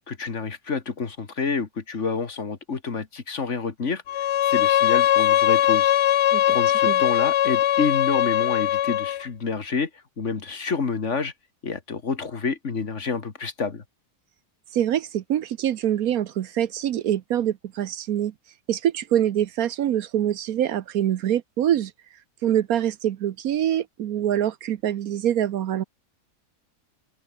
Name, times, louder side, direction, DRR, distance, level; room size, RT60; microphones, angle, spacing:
voice 1, 0.1-5.9 6.5-11.3 11.6-13.8, left 5 dB, 50° left, 2.1 m, -28 dB
Bowed string instrument, 4.1-9.2, left 12 dB, 65° left, 0.6 m, -20 dB
voice 2, 14.7-18.3 18.7-21.9 22.4-25.8, right 11 dB, 70° right, 1.2 m, -24 dB
open air
omnidirectional pair, 1.7 m